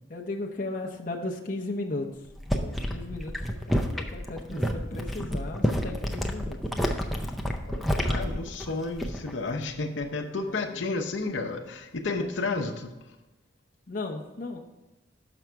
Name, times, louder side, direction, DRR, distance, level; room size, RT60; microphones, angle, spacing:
voice 1, 0.1-2.1 2.6-6.9 7.6-8.1 10.4-10.8 12.2-12.3 13.9-14.6, left 2 dB, 45° left, 0 dB, 0.6 m, -36 dB
sound 1, 2.2-9.4 9.7-10.1, equal, ahead, 0.5 m, -29 dB
voice 2, 8.0-12.9, left 3 dB, 80° left, 3 dB, 0.8 m, -31 dB
6.3 x 5.9 x 4.5 m, 1.1 s
head